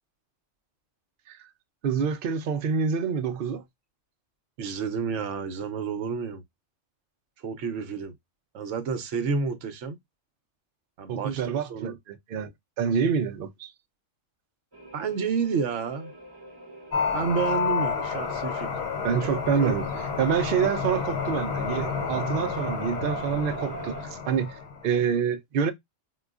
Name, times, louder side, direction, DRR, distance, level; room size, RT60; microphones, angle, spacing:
voice 1, 1.8-3.6 11.1-12.5 12.8-13.7 19.0-19.9 20.2-23.9 24.3-25.7, right 7 dB, 55° right, 0.7 m, -27 dB
voice 2, 4.6-6.4 7.4-8.1 8.5-10.0 11.0-12.0 14.9-16.1 17.1-18.7 19.6-19.8, right 5 dB, 75° right, 1.0 m, -30 dB
sound 1, 14.7-24.0, right 4 dB, 20° right, 1.0 m, -44 dB
sound 2, 16.9-24.9, left 5 dB, 60° left, 0.9 m, -30 dB
4.6 x 2.3 x 2.3 m
omnidirectional pair, 1.3 m